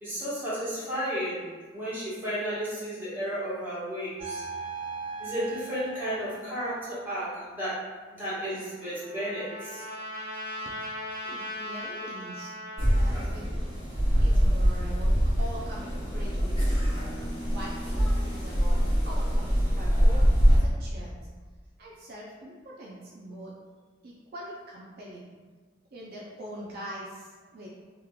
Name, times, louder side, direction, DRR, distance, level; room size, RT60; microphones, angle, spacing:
voice 1, 0.0-1.4 1.7-4.4 5.2-7.8 8.1-9.8, equal, 10° right, -12 dB, 1.5 m, -33 dB
sound 1, 4.2-7.4, right 4 dB, 30° right, 0.8 m, -39 dB
Trumpet, 8.4-13.1, left 1 dB, 55° left, 1.2 m, -38 dB
voice 2, 10.9-13.7 14.2-16.6 17.4-21.3 21.8-23.5 24.0-25.4 25.9-27.7, right 1 dB, 55° right, -4 dB, 0.4 m, -43 dB
sound 2, 12.8-20.6, equal, 35° left, 1.2 m, -24 dB
3.6 x 3.0 x 2.3 m, 1.4 s
head